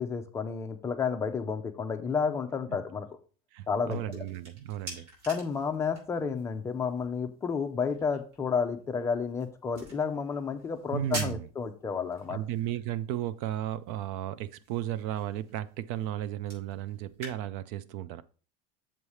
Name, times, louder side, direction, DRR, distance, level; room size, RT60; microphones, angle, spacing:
voice 1, 0.0-3.1 3.7-4.2 5.3-12.4, left 5 dB, 15° left, 0.6 m, -31 dB
voice 2, 3.5-5.1 10.9-11.5 12.3-18.2, right 12 dB, 55° right, 0.4 m, -34 dB
sound 1, 3.6-17.3, right 1 dB, 80° right, 4.0 m, -48 dB
7.2 x 3.2 x 5.5 m
supercardioid pair, 160°, 20 cm